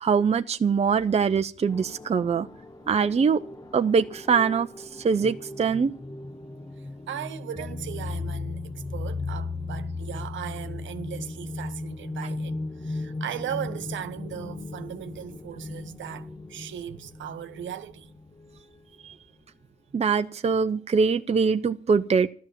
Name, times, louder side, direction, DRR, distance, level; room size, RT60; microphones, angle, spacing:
voice 1, 0.0-2.5 2.9-3.4 3.7-5.9 19.0-19.1 19.9-22.3, right 5 dB, 30° right, 0.8 m, -23 dB
sound 1, 1.7-18.8, left 3 dB, 20° left, 1.0 m, -37 dB
voice 2, 6.8-18.1, right 10 dB, 70° right, 1.3 m, -38 dB
14.0 x 12.5 x 7.5 m
cardioid pair, 90°, 20 cm